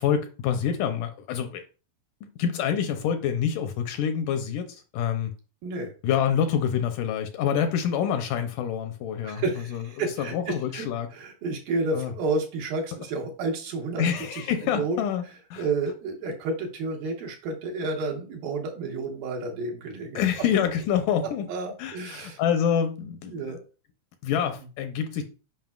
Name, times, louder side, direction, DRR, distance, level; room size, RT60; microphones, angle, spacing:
voice 1, 0.0-1.7 2.2-5.3 6.0-9.4 9.7-9.8 10.2-11.1 11.9-12.1 14.0-15.7 20.2-21.5 21.8-23.5 24.2-25.2, left 8 dB, 80° left, 2.0 m, -27 dB
voice 2, 5.6-5.9 9.2-10.9 11.1-14.0 14.3-14.5 14.7-15.0 15.6-20.2 21.5-22.4 23.3-23.6, right 3 dB, 85° right, 3.1 m, -30 dB
7.4 x 5.3 x 2.3 m
omnidirectional pair, 4.0 m